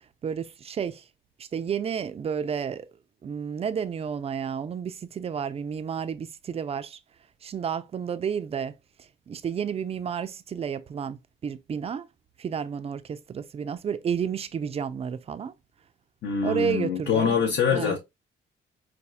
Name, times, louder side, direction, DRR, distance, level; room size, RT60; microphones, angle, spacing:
voice 1, 0.2-1.0 1.4-2.9 3.2-7.0 7.4-8.7 9.0-12.1 12.4-15.5 16.4-17.4 17.7-18.0, right 7 dB, 30° right, 0.4 m, -31 dB
voice 2, 16.2-18.0, left 6 dB, 60° left, 0.7 m, -24 dB
4.2 x 2.3 x 2.2 m
cardioid pair, 90°, 20 cm